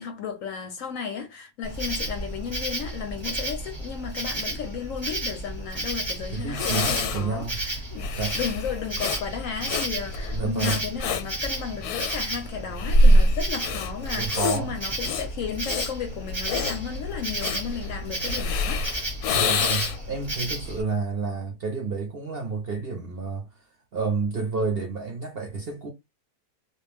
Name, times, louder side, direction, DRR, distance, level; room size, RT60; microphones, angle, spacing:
voice 1, 0.0-18.9, left 7 dB, 70° left, 0.9 m, -34 dB
Insect, 1.6-20.8, right 1 dB, 20° right, 0.9 m, -33 dB
Breathing, 6.1-6.2 6.5-20.1, left 1 dB, 90° left, 1.2 m, -25 dB
voice 2, 6.3-7.6 8.2-8.4 10.3-10.8 14.1-14.7 19.3-23.5 23.9-25.9, right 4 dB, 50° right, 0.7 m, -30 dB
2.5 x 2.2 x 3.2 m
omnidirectional pair, 1.6 m